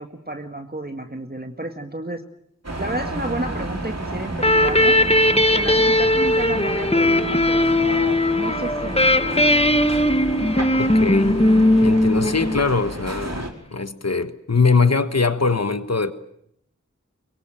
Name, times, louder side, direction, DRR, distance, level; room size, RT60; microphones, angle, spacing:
voice 1, 0.0-2.3 2.8-5.0 5.5-9.5, right 1 dB, 35° right, 1.9 m, -32 dB
sound 1, 2.6-13.5, right 1 dB, 60° right, 4.9 m, -31 dB
sound 2, 4.4-12.9, left 1 dB, 20° left, 1.5 m, -18 dB
voice 2, 10.7-11.3 11.8-16.1, left 4 dB, 60° left, 1.4 m, -22 dB
24.0 x 23.5 x 9.1 m
wide cardioid pair, 40°, 29 cm